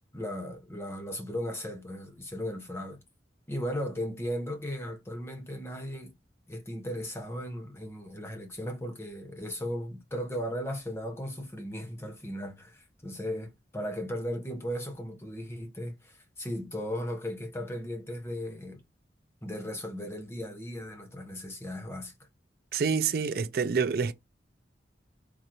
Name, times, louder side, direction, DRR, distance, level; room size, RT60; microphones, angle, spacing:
voice 1, 0.1-3.0 3.5-6.1 6.5-18.8 19.4-22.1, equal, 15° left, 0.9 m, -36 dB
voice 2, 22.7-24.1, right 5 dB, 55° right, 0.4 m, -27 dB
3.8 x 3.1 x 2.9 m
head